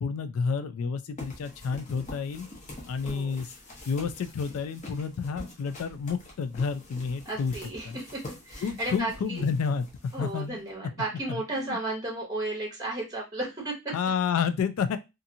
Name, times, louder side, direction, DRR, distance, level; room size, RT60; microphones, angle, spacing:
voice 1, 0.0-2.5 2.9-3.5 3.9-7.5 7.9-8.0 8.6-9.8 10.2-10.6 11.7-11.8 13.9-15.0, left 6 dB, 75° left, 12 dB, 0.3 m, -30 dB
sound 1, 1.2-10.7, left 1 dB, 35° left, 0.7 m, -46 dB
voice 2, 3.0-3.4 7.2-9.4 10.1-13.9, right 2 dB, 15° right, -2 dB, 0.7 m, -34 dB
2.7 x 2.5 x 2.6 m, 0.24 s
head